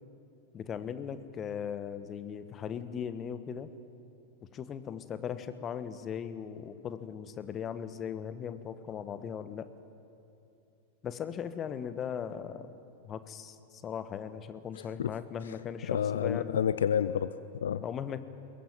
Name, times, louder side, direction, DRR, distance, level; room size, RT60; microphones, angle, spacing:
voice 1, 0.5-3.7 4.5-9.7 11.0-12.7 13.0-16.6 17.8-18.2, left 8 dB, 25° left, 12 dB, 1.3 m, -38 dB
voice 2, 15.9-17.8, left 8 dB, 65° left, 15 dB, 0.5 m, -29 dB
22.0 x 21.0 x 9.2 m, 2.8 s
figure-of-eight pair, 90°, 0 cm